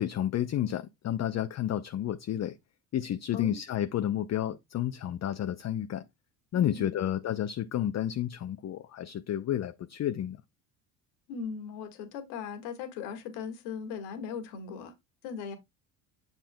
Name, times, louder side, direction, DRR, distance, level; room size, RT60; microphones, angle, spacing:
voice 1, 0.0-2.6 2.9-6.0 6.5-10.4, left 11 dB, 35° left, 0.6 m, -31 dB
voice 2, 3.3-3.6 6.5-7.0 11.3-14.9 15.2-15.6, left 6 dB, 75° left, 2.0 m, -38 dB
8.0 x 7.1 x 2.2 m
hypercardioid pair, 70°, 45 cm